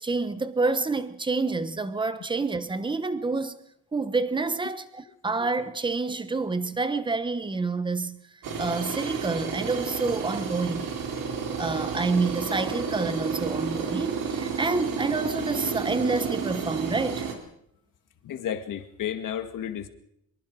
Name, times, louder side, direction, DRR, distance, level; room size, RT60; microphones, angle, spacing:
voice 1, 0.0-3.6 3.9-8.2 8.6-10.9 11.6-17.3, right 3 dB, 15° right, 1.1 m, -28 dB
sound 1, 8.4-17.3, right 6 dB, 65° right, 4.4 m, -31 dB
voice 2, 18.2-19.9, left 9 dB, 60° left, 2.0 m, -32 dB
24.5 x 23.0 x 4.8 m
cardioid pair, 170°, 36 cm